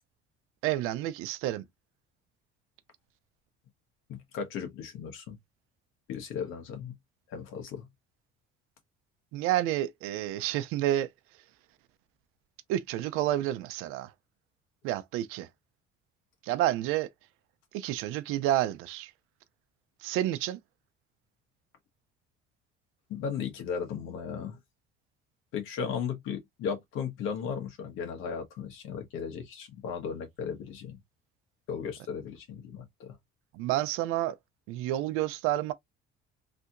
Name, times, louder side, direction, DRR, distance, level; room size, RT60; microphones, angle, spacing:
voice 1, 0.6-1.6 9.3-11.1 12.7-14.1 14.8-15.5 16.4-17.1 17.7-19.1 20.0-20.6 33.5-34.4 34.7-35.7, right 13 dB, 85° right, 0.6 m, -29 dB
voice 2, 4.1-5.4 6.1-6.9 7.3-7.9 23.1-24.6 25.5-31.0 31.7-33.2, left 6 dB, 70° left, 1.3 m, -36 dB
3.4 x 2.7 x 2.5 m
cardioid pair, 130°, 21 cm